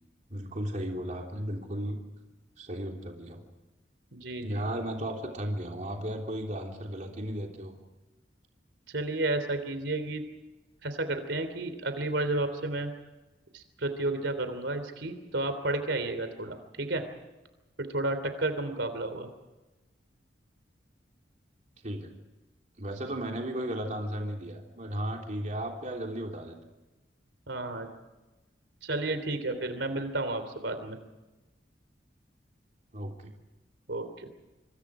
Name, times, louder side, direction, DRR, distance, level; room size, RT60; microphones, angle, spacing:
voice 1, 0.3-2.0 2.6-3.4 4.4-7.7 21.8-22.1 22.8-26.6 32.9-33.3, right 1 dB, 40° right, 1 dB, 3.4 m, -35 dB
voice 2, 4.1-4.7 8.9-10.2 10.8-12.9 13.5-17.0 17.8-19.3 27.5-27.9 28.8-31.0 33.9-34.3, right 2 dB, 80° right, 9 dB, 3.4 m, -32 dB
26.0 x 26.0 x 5.0 m, 1.1 s
head